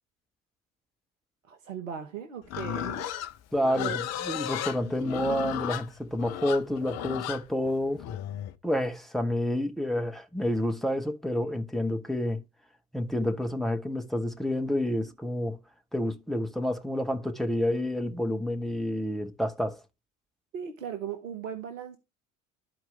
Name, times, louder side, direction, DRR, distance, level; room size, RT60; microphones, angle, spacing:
voice 1, 1.4-3.1 3.7-4.0 20.5-22.0, right 8 dB, 75° right, 1.0 m, -37 dB
Livestock farm animals working animals, 2.5-8.5, left 11 dB, 40° left, 0.7 m, -34 dB
voice 2, 3.5-8.0 8.6-12.4 12.9-15.6 15.9-19.8, left 1 dB, ahead, 0.9 m, -29 dB
12.5 x 4.6 x 3.2 m
figure-of-eight pair, 60°, 40 cm